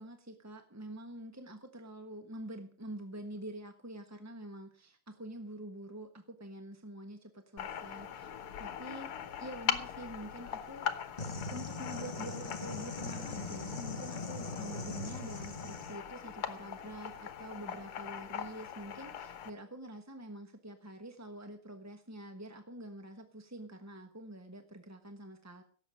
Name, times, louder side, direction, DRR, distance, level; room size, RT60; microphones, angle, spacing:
voice 1, 0.0-8.3 8.6-9.1 9.4-11.2 11.5-25.6, right 1 dB, 10° right, 6 dB, 0.8 m, -46 dB
sound 1, 7.6-19.5, left 9 dB, 85° left, 2.1 m, -41 dB
sound 2, 11.2-16.0, left 3 dB, 25° left, 1.0 m, -41 dB
17.0 x 7.7 x 6.4 m, 0.42 s
omnidirectional pair, 2.4 m